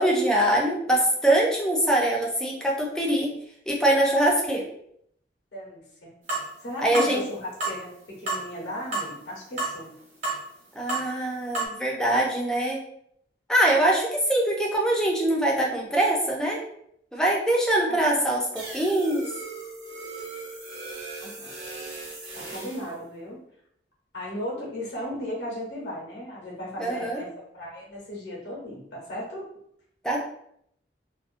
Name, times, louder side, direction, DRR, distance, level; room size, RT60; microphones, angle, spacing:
voice 1, 0.0-3.3 3.7-4.6 6.8-7.3 10.7-12.8 13.5-16.6 17.1-19.2 26.8-27.2 30.0-30.2, right 1 dB, 5° left, -2 dB, 0.4 m, -23 dB
voice 2, 5.5-6.1 6.6-7.9 8.2-10.0 17.9-18.3 21.2-21.5 22.3-23.4 24.1-27.3 27.5-29.4, equal, 80° left, -3 dB, 0.8 m, -36 dB
sound 1, 6.3-6.5 6.9-7.1 7.6-7.8 8.3-8.4 8.9-9.1 9.6-9.8 10.2-10.4 10.9-11.1 11.5-11.6, right 3 dB, 40° right, 1.0 m, -28 dB
sound 2, 18.6-22.9, right 3 dB, 75° right, 0.7 m, -39 dB
2.3 x 2.1 x 2.5 m, 0.71 s
head